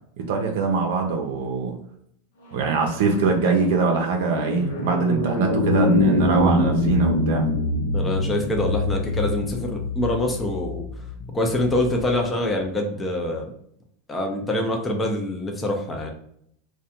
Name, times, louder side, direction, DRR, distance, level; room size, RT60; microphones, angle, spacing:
voice 1, 0.2-1.7 2.5-7.5, right 4 dB, 75° right, 2 dB, 0.5 m, -22 dB
sound 1, 2.6-12.1, left 2 dB, 85° left, 0.7 m, -25 dB
voice 2, 7.9-10.8 11.3-13.5 14.1-16.1, left 1 dB, 15° left, 1 dB, 0.5 m, -25 dB
2.4 x 2.2 x 2.8 m, 0.70 s
supercardioid pair, 130°, 0 cm